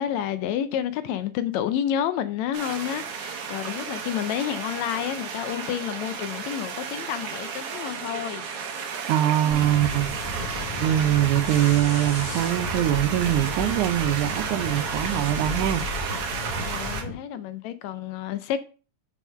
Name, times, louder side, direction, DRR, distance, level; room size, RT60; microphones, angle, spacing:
voice 1, 0.0-8.4 9.4-9.7 16.6-18.6, left 10 dB, 80° left, 1.7 m, -30 dB
sound 1, 2.5-17.0, right 6 dB, 60° right, 1.8 m, -33 dB
voice 2, 9.0-10.1 10.8-15.8, right 13 dB, 90° right, 2.1 m, -23 dB
sound 2, 9.5-17.1, left 2 dB, 15° left, 1.4 m, -34 dB
5.3 x 4.8 x 5.5 m
omnidirectional pair, 3.4 m